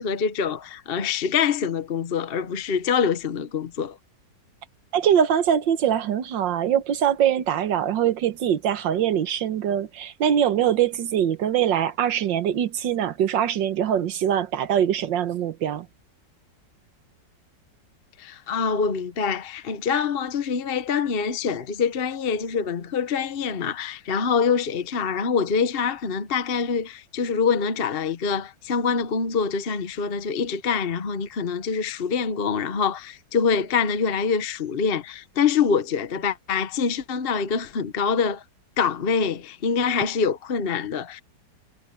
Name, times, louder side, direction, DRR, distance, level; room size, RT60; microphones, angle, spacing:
voice 1, 0.0-4.0 18.2-38.4 38.8-41.2, left 6 dB, 40° left, 0.9 m, -25 dB
voice 2, 4.9-15.9, right 9 dB, 85° right, 1.7 m, -23 dB
omnidirectional pair, 1.9 m